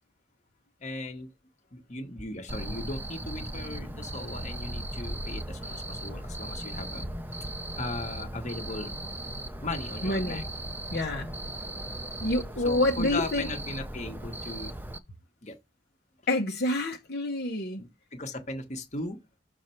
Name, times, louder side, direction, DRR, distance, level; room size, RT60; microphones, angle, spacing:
voice 1, 0.8-1.3 1.7-7.1 7.7-9.0 9.6-10.4 11.9-12.0 12.6-14.8 15.4-15.6 17.8-19.2, left 2 dB, 40° left, 1.4 m, -37 dB
Cricket, 2.5-15.0, right 1 dB, 10° right, 0.8 m, -37 dB
voice 2, 10.0-10.4 10.9-11.3 12.2-13.5 16.3-17.9, left 1 dB, 60° left, 1.1 m, -28 dB
6.7 x 4.5 x 4.4 m
head